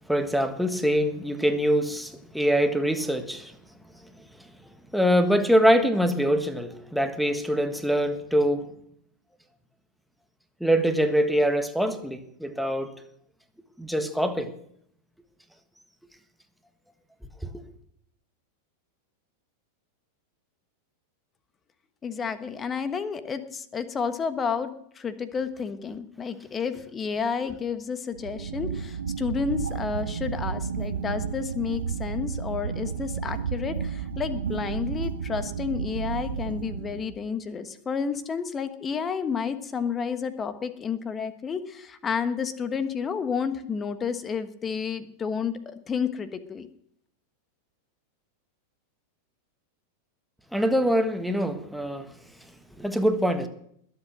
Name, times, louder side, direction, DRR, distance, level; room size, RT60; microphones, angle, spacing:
voice 1, 0.0-3.5 4.0-4.1 4.9-8.7 10.6-12.9 13.8-14.5 50.5-52.1 52.8-53.5, equal, ahead, 7 dB, 1.5 m, -24 dB
voice 2, 22.0-24.7 24.9-46.7, left 6 dB, 20° left, 12 dB, 1.2 m, -31 dB
sound 1, 28.1-37.2, right 6 dB, 70° right, 1.1 m, -32 dB
21.0 x 8.1 x 6.2 m, 0.69 s
figure-of-eight pair, 90°, 0 cm